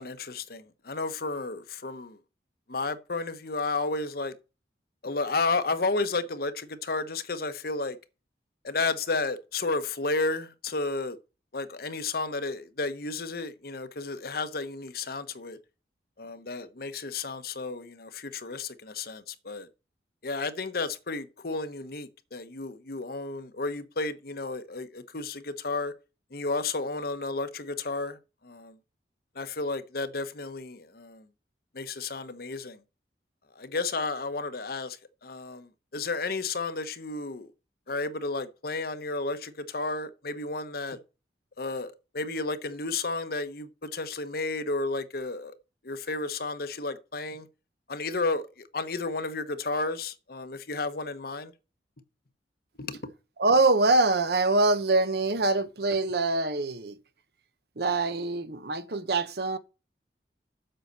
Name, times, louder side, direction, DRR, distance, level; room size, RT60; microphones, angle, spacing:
voice 1, 0.0-2.2 2.7-4.3 5.0-8.0 8.6-11.2 11.5-15.6 16.2-19.7 20.2-25.9 26.3-28.2 28.4-28.7 29.4-31.2 31.7-32.8 33.6-35.0 35.2-35.7 35.9-37.5 37.9-41.0 41.6-45.5 45.8-47.5 47.9-48.4 48.7-51.5 52.8-53.1, left 3 dB, 55° left, 1.0 m, -32 dB
voice 2, 53.4-56.9 57.8-59.6, right 3 dB, 60° right, 0.9 m, -24 dB
7.8 x 5.7 x 6.7 m
head